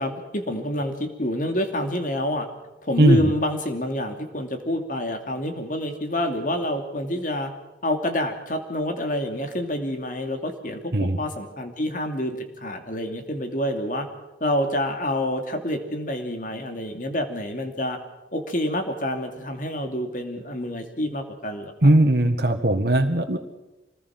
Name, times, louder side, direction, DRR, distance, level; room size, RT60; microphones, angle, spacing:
voice 1, 0.0-2.5 2.8-7.5 7.8-14.1 14.4-18.0 18.3-21.9, left 1 dB, 45° left, 6 dB, 2.7 m, -27 dB
voice 2, 3.0-3.3 10.9-11.2 21.8-23.4, right 1 dB, 55° right, 4 dB, 1.7 m, -18 dB
25.5 x 20.0 x 6.1 m, 1.0 s
head